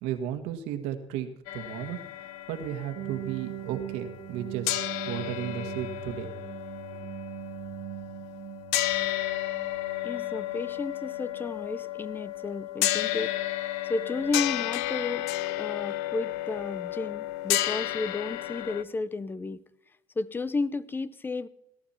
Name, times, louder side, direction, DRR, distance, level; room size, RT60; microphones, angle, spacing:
voice 1, 0.0-2.0 2.5-4.7 5.1-6.3, right 10 dB, 85° right, 8 dB, 1.8 m, -34 dB
sound 1, 1.5-4.4 4.7-18.8, left 15 dB, 85° left, 0.7 m, -32 dB
sound 2, 3.0-10.8, right 18 dB, 65° right, 0.8 m, -41 dB
voice 2, 10.0-13.4 13.8-15.3 15.6-19.6 20.2-21.5, left 3 dB, 20° left, 17 dB, 0.6 m, -33 dB
17.5 x 12.0 x 4.4 m, 0.80 s
cardioid pair, 110°, 10 cm